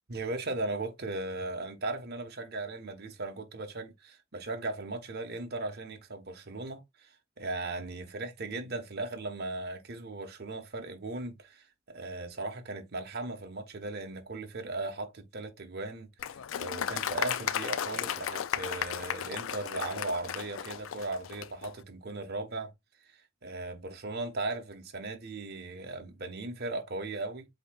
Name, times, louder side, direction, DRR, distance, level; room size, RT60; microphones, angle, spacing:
voice 1, 0.1-22.7 23.0-27.4, right 2 dB, 50° right, 1.1 m, -37 dB
Applause, 16.2-21.7, left 9 dB, 70° left, 0.4 m, -34 dB
7.9 x 2.9 x 2.3 m
head